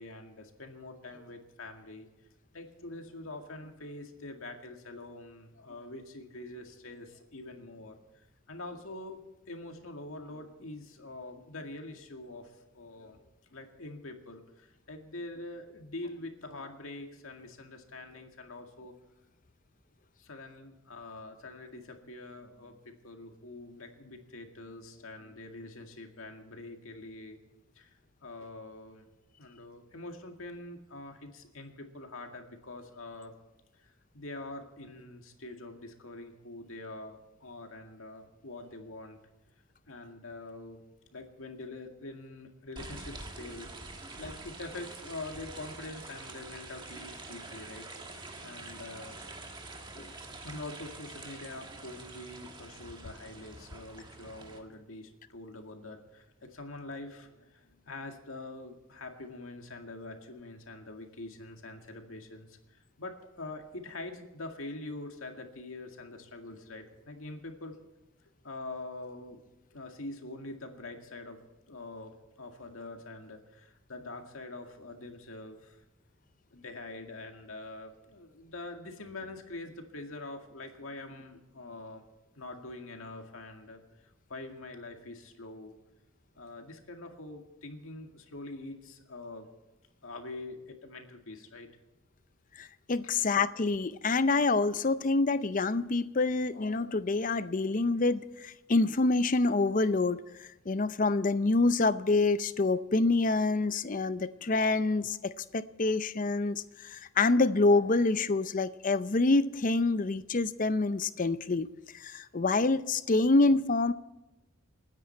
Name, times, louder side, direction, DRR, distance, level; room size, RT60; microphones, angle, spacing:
voice 1, 0.0-2.1 2.5-7.9 8.5-9.2 9.5-18.9 20.2-27.4 27.8-27.9 28.2-29.1 29.4-33.3 33.8-33.9 34.1-39.2 39.9-40.8 41.1-43.7 44.2-47.9 48.4-49.2 50.4-67.8 68.4-69.4 69.7-71.4 71.7-75.8 76.5-82.0 82.4-85.7 86.4-89.5 90.0-91.7 93.0-93.3, left 2 dB, 80° left, 2.1 m, -44 dB
sound 1, 42.8-54.6, right 2 dB, 20° right, 1.6 m, -46 dB
voice 2, 92.6-111.7 111.9-113.9, left 3 dB, 40° left, 0.6 m, -27 dB
28.5 x 9.8 x 4.5 m
head